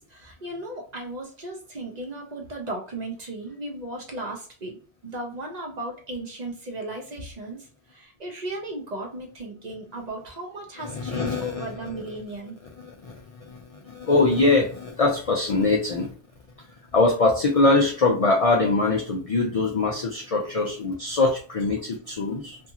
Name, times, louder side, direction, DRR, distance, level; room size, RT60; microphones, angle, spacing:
voice 1, 0.0-12.6, right 2 dB, 45° right, 1 dB, 0.7 m, -36 dB
voice 2, 10.8-11.7 12.8-13.1 13.5-16.1 16.9-22.6, left 3 dB, 55° left, 0 dB, 0.4 m, -22 dB
2.6 x 2.4 x 2.7 m, 0.40 s
omnidirectional pair, 1.1 m